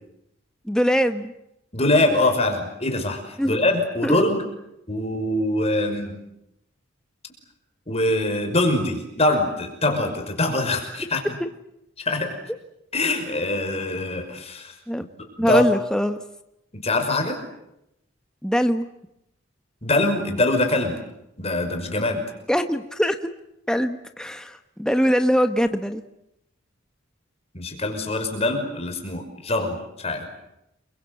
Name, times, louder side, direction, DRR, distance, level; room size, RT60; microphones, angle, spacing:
voice 1, 0.6-1.3 3.4-3.6 4.0-4.2 14.9-15.1 15.4-16.2 18.4-18.9 22.5-23.3 23.7-26.0, equal, 5° left, 7 dB, 1.2 m, -22 dB
voice 2, 1.7-4.4 4.9-6.1 7.9-11.2 12.0-12.3 12.9-14.7 15.4-15.7 16.7-17.4 19.8-20.9 21.4-22.2 27.5-30.5, left 2 dB, 30° left, 5 dB, 5.8 m, -23 dB
29.5 x 24.0 x 7.9 m, 0.83 s
head